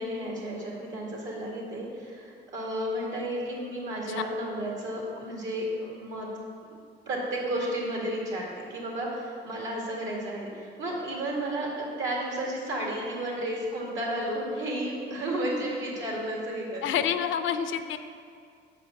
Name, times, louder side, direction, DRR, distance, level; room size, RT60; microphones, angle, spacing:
voice 1, 0.0-6.3 7.1-17.0, right 1 dB, 75° right, -3 dB, 2.1 m, -32 dB
voice 2, 16.8-18.0, left 9 dB, 75° left, 10 dB, 0.5 m, -28 dB
6.5 x 4.9 x 6.3 m, 2.2 s
cardioid pair, 90°, 20 cm